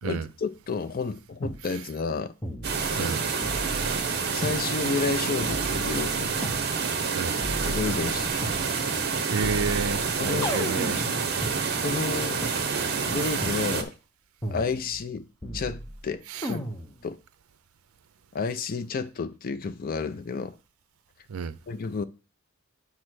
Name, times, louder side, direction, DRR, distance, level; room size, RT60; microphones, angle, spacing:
voice 1, 0.0-2.3 3.0-3.2 4.3-6.4 7.6-8.3 10.2-10.6 11.8-12.4 13.1-13.9 14.5-15.3 15.5-16.7 17.0-17.2 18.3-20.5 21.7-22.0, left 4 dB, 45° left, 0.4 m, -31 dB
sound 1, 1.4-1.6 2.4-3.1 3.4-4.6 5.4-6.6 7.4-8.6 9.4-11.6 12.4-12.5 13.4-13.6 14.4-15.1 15.4-16.0 16.4-17.0, equal, 15° left, 0.9 m, -35 dB
sound 2, 2.6-13.8, right 5 dB, 50° right, 0.9 m, -28 dB
voice 2, 9.3-11.0 16.3-16.4 21.3-21.5, right 5 dB, 85° right, 0.5 m, -30 dB
8.5 x 3.3 x 6.1 m
head